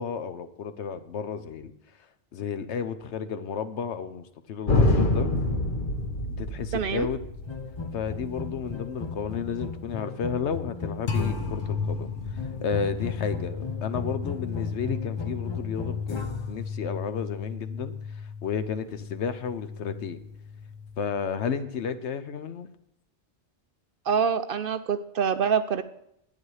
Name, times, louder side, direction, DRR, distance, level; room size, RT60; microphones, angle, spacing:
voice 1, 0.0-1.7 2.3-5.3 6.4-7.2 7.9-17.9 18.4-20.2 21.0-22.7, left 6 dB, 75° left, 10 dB, 1.1 m, -32 dB
sound 1, 4.7-9.8 11.1-21.1, left 3 dB, 45° left, 1.2 m, -31 dB
voice 2, 6.7-7.1 24.1-25.8, right 7 dB, 60° right, 12 dB, 0.7 m, -25 dB
sound 2, 7.5-11.7 12.4-16.6, left 5 dB, 30° left, 0.6 m, -36 dB
11.0 x 9.2 x 4.8 m, 0.77 s
omnidirectional pair, 1.2 m